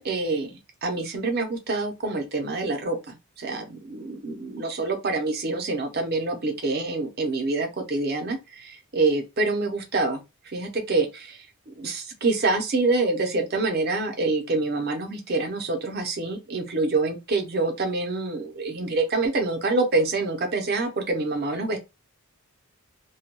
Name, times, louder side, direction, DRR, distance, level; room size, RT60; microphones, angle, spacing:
voice 1, 0.0-21.8, right 3 dB, 45° right, 0.6 m, -26 dB
2.3 x 2.2 x 2.8 m
head